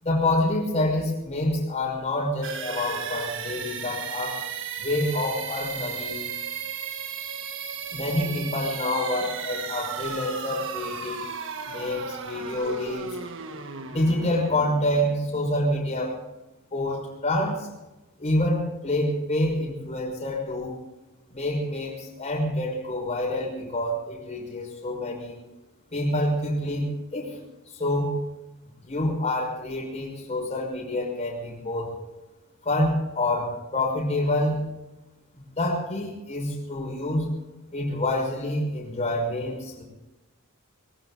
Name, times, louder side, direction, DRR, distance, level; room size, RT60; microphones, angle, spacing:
voice 1, 0.0-4.4 4.8-6.2 7.9-11.2 11.7-13.2 13.9-16.1 16.7-17.7 18.2-20.8 21.3-25.4 25.9-27.4 27.7-28.2 28.8-31.9 32.6-34.7 35.6-37.3 37.7-39.8, left 1 dB, 30° left, -1 dB, 5.8 m, -27 dB
sound 1, 2.4-16.1, right 6 dB, 65° right, 1.6 m, -35 dB
23.0 x 15.0 x 4.1 m, 1.0 s
head